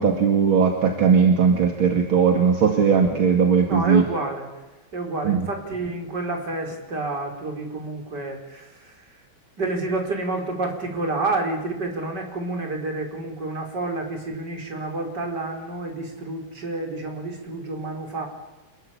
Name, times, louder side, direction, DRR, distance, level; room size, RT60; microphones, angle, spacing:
voice 1, 0.0-4.0 5.2-5.4, right 6 dB, 75° right, 3 dB, 3.1 m, -18 dB
voice 2, 3.7-4.5 4.9-9.2 9.6-18.3, right 2 dB, 50° right, 2 dB, 5.4 m, -29 dB
26.5 x 22.0 x 8.7 m, 1.1 s
omnidirectional pair, 2.3 m